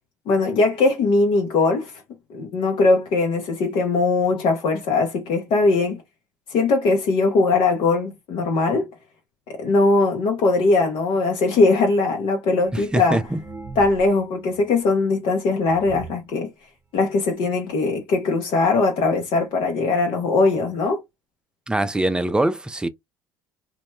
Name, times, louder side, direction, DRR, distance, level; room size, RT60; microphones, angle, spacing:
voice 1, 0.3-1.9 2.3-6.0 6.5-8.9 9.5-13.2 13.8-16.5 16.9-21.0, left 3 dB, 60° left, 0.6 m, -20 dB
sound 1, 12.6-14.3 14.5-14.6 15.2-15.3 15.6-16.3 17.0-17.1 17.4-17.5 17.8-18.1 18.9-19.0 19.3-19.4 20.0-20.1 20.4-20.5, right 4 dB, 25° right, 0.8 m, -40 dB
voice 2, 12.7-13.4 21.7-22.9, right 1 dB, 10° right, 0.4 m, -23 dB
2.2 x 2.1 x 3.0 m
hypercardioid pair, 75°, 10 cm